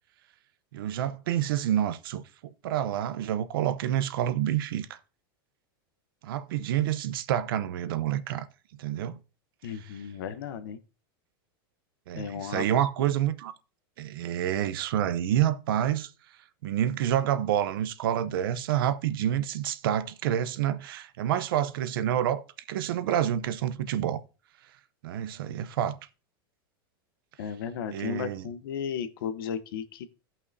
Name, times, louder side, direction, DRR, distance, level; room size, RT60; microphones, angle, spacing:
voice 1, 0.7-5.0 6.2-8.5 8.8-9.2 12.1-13.5 14.0-16.1 16.6-22.4 22.7-24.2 25.0-26.0 27.9-28.5, right 11 dB, 75° right, 0.7 m, -28 dB
voice 2, 9.6-10.8 12.1-12.6 13.0-13.1 27.4-30.1, left 8 dB, 75° left, 0.9 m, -35 dB
15.0 x 5.6 x 2.7 m
supercardioid pair, 150°, 12 cm